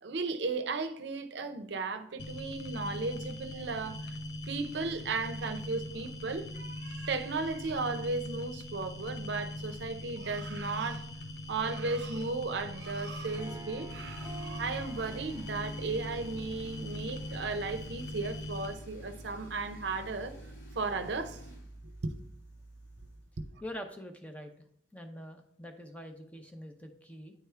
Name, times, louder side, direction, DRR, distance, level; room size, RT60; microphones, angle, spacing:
voice 1, 0.0-4.0 4.5-11.1 11.5-20.3 20.8-21.4 21.8-22.1, right 3 dB, 70° right, 0.6 m, -35 dB
sound 1, 2.2-18.8, left 1 dB, 65° left, 0.6 m, -41 dB
Harp, 12.6-17.8, right 2 dB, 25° right, 1.2 m, -50 dB
Tools, 13.8-23.3, right 1 dB, 85° left, 2.3 m, -48 dB
voice 2, 23.6-24.5 24.9-27.3, equal, 5° left, 0.6 m, -44 dB
9.3 x 3.5 x 4.4 m
head